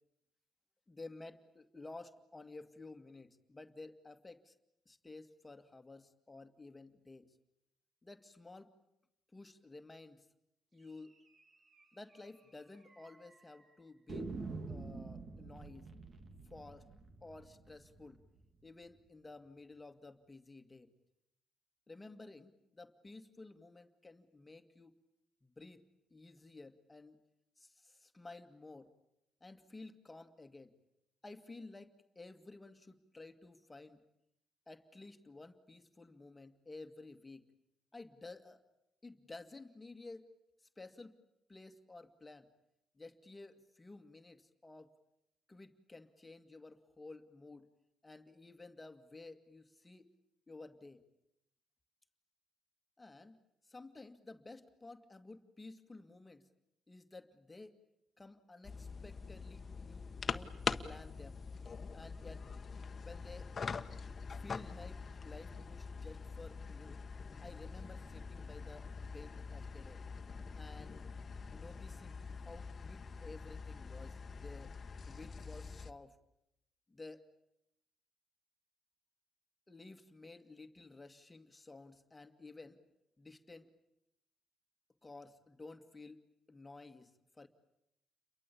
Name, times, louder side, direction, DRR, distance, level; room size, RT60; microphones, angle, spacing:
voice 1, 0.9-4.6 4.9-7.4 8.0-8.7 9.3-10.3 10.7-11.1 11.9-14.3 14.7-15.9 16.4-16.9 17.2-18.2 18.6-20.9 21.9-25.0 25.4-27.2 27.6-28.9 29.4-30.7 31.2-34.0 34.7-37.5 37.9-38.6 39.0-40.2 40.8-41.2 41.5-42.5 43.0-44.9 45.5-47.7 48.0-50.1 50.5-51.0 53.0-53.4 53.6-56.5 56.9-57.8 58.2-60.5 60.8-61.4 61.9-62.5 63.0-63.5 64.4-67.0 67.4-70.0 70.5-71.0 71.5-74.7 75.1-76.2 76.9-77.2 79.7-82.8 83.2-83.7 85.0-87.5, left 3 dB, 20° left, 8 dB, 2.2 m, -53 dB
sound 1, 11.3-11.4 11.7-11.8 12.1-12.2 12.9-13.4 14.1-18.9, right 3 dB, 45° right, 3.6 m, -47 dB
sound 2, 58.6-75.9, left 5 dB, 40° left, 1.4 m, -44 dB
29.5 x 23.0 x 8.6 m, 0.81 s
cardioid pair, 90°, 0 cm